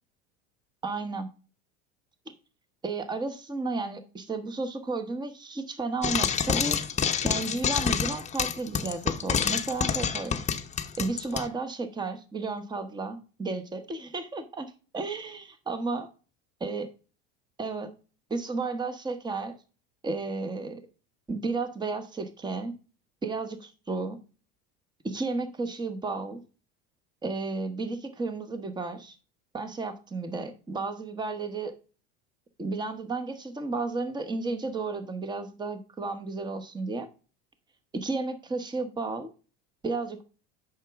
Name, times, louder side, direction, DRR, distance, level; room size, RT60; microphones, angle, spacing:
voice 1, 0.8-1.3 2.3-2.4 2.8-6.8 7.2-10.4 11.0-16.1 16.6-16.9 17.6-17.9 18.3-19.5 20.0-20.8 21.3-22.7 23.2-24.2 25.0-26.4 27.2-29.2 29.5-31.7 32.6-37.1 37.9-39.3 39.8-40.2, right 3 dB, 15° right, 0.9 m, -33 dB
Frying (food), 6.0-11.5, left 7 dB, 20° left, 0.8 m, -27 dB
8.2 x 6.0 x 3.5 m
supercardioid pair, 120°, 31 cm